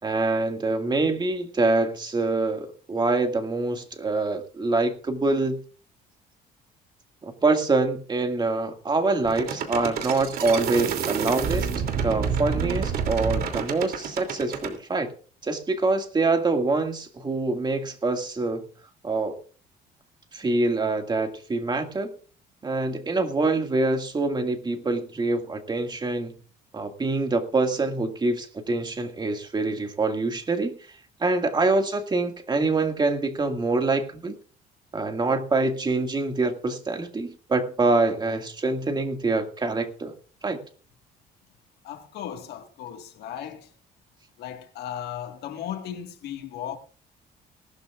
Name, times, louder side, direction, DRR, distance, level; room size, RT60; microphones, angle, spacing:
voice 1, 0.0-5.6 7.2-11.7 12.0-15.1 15.4-18.6 19.0-19.4 20.3-22.1 22.6-26.3 26.7-30.8 31.2-34.4 34.9-40.1 40.4-40.6, right 3 dB, 25° right, 2.1 m, -25 dB
sound 1, 9.2-14.7, right 6 dB, 65° right, 3.0 m, -28 dB
voice 2, 41.8-43.7 44.4-46.8, left 10 dB, 75° left, 1.8 m, -36 dB
19.5 x 12.5 x 2.5 m
cardioid pair, 110°, 17 cm